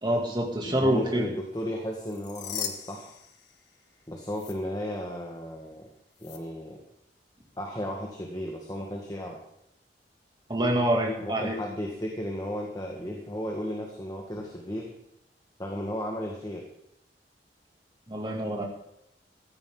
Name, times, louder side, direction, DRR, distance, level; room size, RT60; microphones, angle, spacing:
voice 1, 0.0-1.3 10.5-11.6 18.1-18.6, right 1 dB, 25° right, 0 dB, 2.6 m, -26 dB
voice 2, 0.7-3.1 4.1-5.9 6.2-6.8 7.6-9.4 11.2-14.9 15.6-16.6, equal, 20° left, 0 dB, 1.6 m, -34 dB
sound 1, 1.9-4.0 4.3-4.5 6.2-6.4, left 8 dB, 80° left, 1.4 m, -39 dB
15.5 x 14.0 x 3.9 m, 0.78 s
head